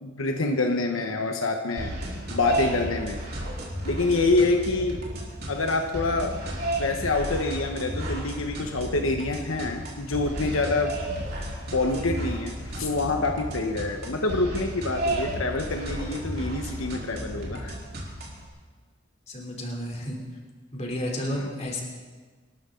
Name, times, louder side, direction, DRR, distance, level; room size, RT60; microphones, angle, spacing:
voice 1, 0.0-1.9 2.3-3.2 3.8-5.0 5.5-6.3 6.8-10.9 11.7-17.7 21.4-21.5, left 3 dB, 80° left, 3 dB, 1.2 m, -26 dB
sound 1, 1.8-18.5, right 1 dB, 50° right, 3.8 m, -33 dB
sound 2, 4.2-16.8, equal, 65° left, 2.8 m, -47 dB
voice 2, 19.3-20.2 20.7-21.8, equal, 35° left, 0 dB, 3.2 m, -31 dB
26.5 x 12.5 x 3.9 m, 1.4 s
head